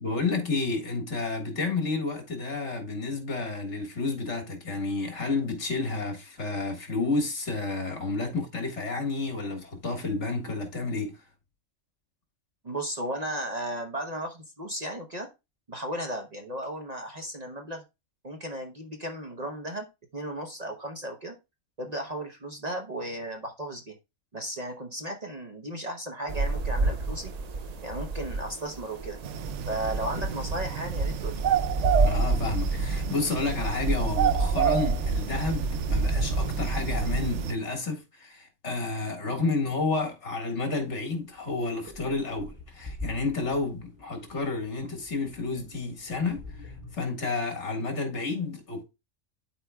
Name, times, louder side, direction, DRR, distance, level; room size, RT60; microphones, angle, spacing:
voice 1, 0.0-11.2 32.0-48.8, left 3 dB, 65° left, 2.0 m, -30 dB
voice 2, 12.6-15.3 15.7-17.8 18.2-19.9 20.1-21.4 21.8-23.9 24.3-27.3 27.8-29.2 29.7-31.4, right 1 dB, 35° right, 0.8 m, -35 dB
sound 1, 26.3-37.5, right 2 dB, 90° right, 0.3 m, -29 dB
sound 2, 29.2-37.5, right 10 dB, 70° right, 0.9 m, -31 dB
sound 3, 41.6-47.0, left 2 dB, 15° right, 1.3 m, -44 dB
12.0 x 4.4 x 2.2 m
omnidirectional pair, 1.3 m